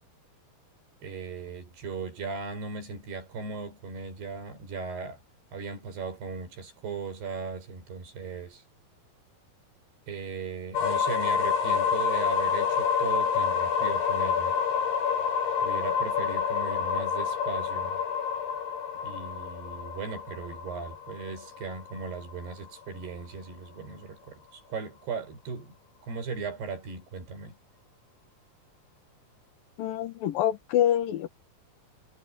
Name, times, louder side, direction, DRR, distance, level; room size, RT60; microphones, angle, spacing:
voice 1, 1.0-5.2 5.5-8.6 10.1-14.6 15.6-18.0 19.0-25.8 26.0-27.6, right 5 dB, 80° right, 7.2 m, -37 dB
sound 1, 10.7-22.5, left 7 dB, 90° left, 9.4 m, -28 dB
voice 2, 29.8-31.3, left 11 dB, 65° left, 3.0 m, -26 dB
omnidirectional pair, 4.6 m